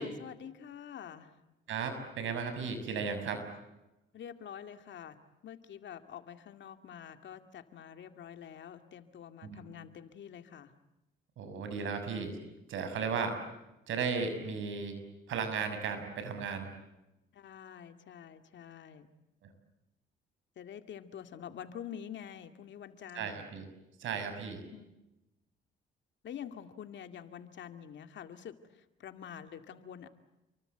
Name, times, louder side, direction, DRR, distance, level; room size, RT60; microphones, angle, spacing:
voice 1, 0.0-1.3 4.1-5.2 5.4-10.7 17.3-19.1 20.6-23.5 24.7-24.9 26.2-30.1, left 9 dB, 65° left, 8 dB, 2.3 m, -47 dB
voice 2, 1.7-3.5 9.4-9.6 11.4-12.4 12.7-13.4 13.9-15.0 15.3-16.7 23.1-23.6 24.0-24.7, right 5 dB, 80° right, 8 dB, 6.4 m, -35 dB
29.5 x 24.0 x 8.1 m, 0.96 s
cardioid pair, 90°, 20 cm